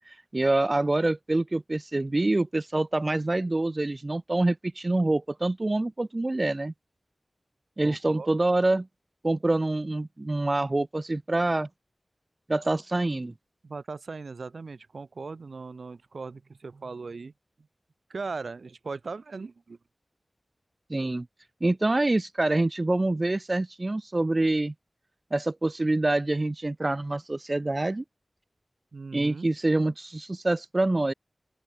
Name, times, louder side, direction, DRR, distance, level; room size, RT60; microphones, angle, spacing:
voice 1, 0.0-6.7 7.8-8.9 9.2-11.7 12.5-13.3 20.9-21.3 21.6-24.7 25.3-28.0 29.1-31.1, right 2 dB, 35° right, 1.5 m, -26 dB
voice 2, 7.8-8.3 13.6-17.3 18.1-19.8 28.9-29.5, right 4 dB, 85° right, 4.7 m, -38 dB
open air
wide cardioid pair, 85°, 0 cm